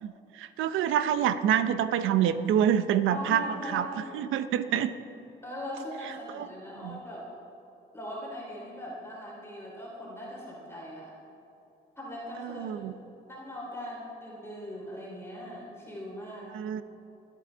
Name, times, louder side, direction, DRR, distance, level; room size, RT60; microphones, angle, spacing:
voice 1, 0.0-3.9 4.1-4.9 6.3-6.5 6.8-7.0 12.4-12.9 16.5-16.8, right 9 dB, 85° right, 12 dB, 0.7 m, -27 dB
voice 2, 3.1-4.3 5.4-7.3 7.9-11.1 12.0-12.8 13.3-16.5, equal, 10° left, -5 dB, 3.0 m, -40 dB
23.5 x 8.5 x 3.9 m, 2.8 s
cardioid pair, 90°, 20 cm